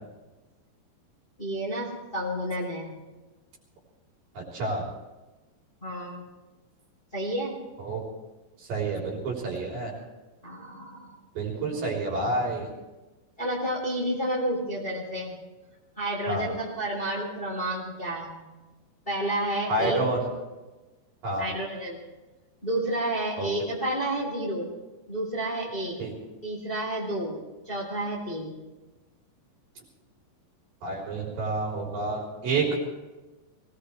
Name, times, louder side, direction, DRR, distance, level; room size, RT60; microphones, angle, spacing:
voice 1, 1.4-2.9 5.8-6.2 7.1-7.6 10.4-11.1 11.5-11.7 13.4-15.4 16.0-18.4 19.0-20.0 21.4-22.0 22.6-24.7 25.1-25.9 26.4-27.4 27.6-28.5, right 1 dB, 15° left, -3 dB, 3.3 m, -30 dB
voice 2, 4.3-4.8 7.8-8.0 8.7-9.9 11.3-12.7 16.3-16.5 19.7-20.2 21.2-21.5 23.4-23.5 26.0-26.1 30.8-32.8, right 2 dB, 55° right, -3 dB, 5.0 m, -29 dB
23.0 x 18.0 x 3.3 m, 1.2 s
omnidirectional pair, 5.1 m